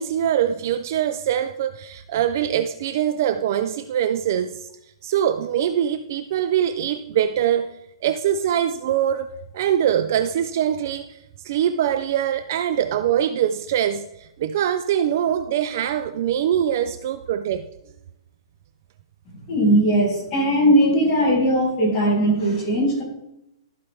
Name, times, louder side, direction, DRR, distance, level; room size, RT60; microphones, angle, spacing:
voice 1, 0.0-4.7 5.0-7.7 8.0-9.3 9.5-11.2 11.4-17.7, right 10 dB, 35° right, 0.3 m, -23 dB
voice 2, 19.5-23.0, right 1 dB, 20° left, 3.2 m, -19 dB
14.0 x 4.8 x 3.5 m
hypercardioid pair, 180°, 3 cm